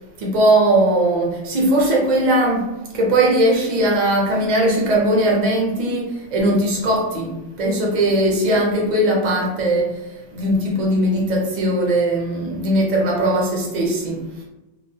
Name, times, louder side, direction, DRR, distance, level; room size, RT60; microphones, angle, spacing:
voice 1, 0.1-14.4, right 1 dB, 45° right, -2 dB, 0.6 m, -19 dB
2.3 x 2.1 x 2.6 m, 1.0 s
omnidirectional pair, 1.2 m